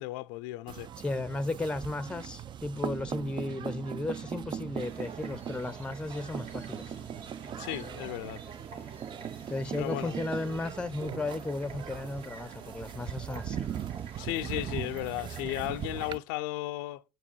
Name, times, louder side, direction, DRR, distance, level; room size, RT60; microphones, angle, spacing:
voice 1, 0.0-0.9 7.6-8.4 9.8-10.2 14.2-17.0, left 17 dB, 75° left, 0.4 m, -35 dB
sound 1, 0.7-16.2, right 9 dB, 40° right, 0.3 m, -40 dB
voice 2, 1.0-6.8 9.5-13.7, left 2 dB, 10° left, 0.5 m, -35 dB
sound 2, 4.7-16.2, right 5 dB, 55° right, 1.5 m, -48 dB
sound 3, 5.0-10.2, right 2 dB, 20° right, 1.5 m, -59 dB
6.5 x 4.7 x 4.3 m
hypercardioid pair, 65°, 12 cm